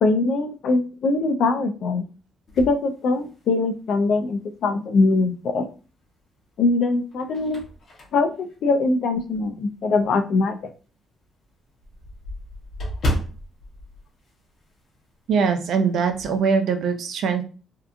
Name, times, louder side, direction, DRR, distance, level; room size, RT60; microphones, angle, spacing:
voice 1, 0.0-2.0 2.6-5.7 6.6-7.6 8.1-10.5, left 3 dB, 70° left, 7 dB, 0.4 m, -22 dB
sound 1, 2.5-3.8 4.3-4.4 5.9-6.4 6.9-9.6 10.0-10.1 10.5-10.6 10.9-11.0 11.2-15.0 15.3-15.5 15.8-16.4, equal, 55° left, 0.8 m, -33 dB
voice 2, 15.3-17.4, right 5 dB, 70° right, 6 dB, 0.5 m, -22 dB
2.7 x 2.3 x 2.4 m, 0.35 s
cardioid pair, 90°, 0 cm